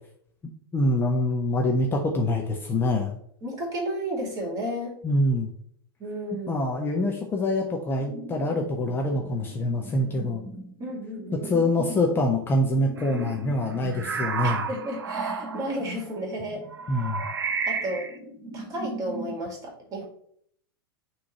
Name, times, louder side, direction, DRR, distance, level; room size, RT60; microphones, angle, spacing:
voice 1, 0.7-3.1 5.0-5.5 6.5-10.4 11.4-14.6 16.9-17.2, left 1 dB, 15° left, 2 dB, 0.7 m, -25 dB
voice 2, 3.4-4.9 6.0-6.5 10.8-11.5 14.4-16.6 17.7-18.1 18.5-20.0, equal, 30° right, 0 dB, 2.3 m, -32 dB
sound 1, 8.0-19.4, right 1 dB, ahead, 1.2 m, -42 dB
sound 2, 13.0-13.3 13.6-15.8 16.7-18.2, right 5 dB, 75° right, 0.6 m, -31 dB
5.9 x 3.1 x 5.1 m, 0.66 s
figure-of-eight pair, 95°, 12 cm